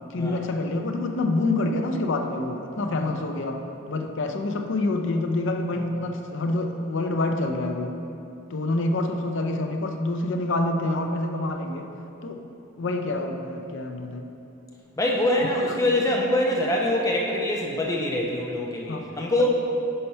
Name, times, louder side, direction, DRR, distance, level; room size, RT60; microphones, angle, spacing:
voice 1, 0.1-3.6 3.9-7.9 8.5-11.9 12.2-12.5 12.8-14.3 18.9-19.1, left 2 dB, 60° left, 5 dB, 0.5 m, -27 dB
voice 2, 15.0-19.5, left 1 dB, 15° left, -1 dB, 0.6 m, -24 dB
5.6 x 4.4 x 5.5 m, 2.7 s
head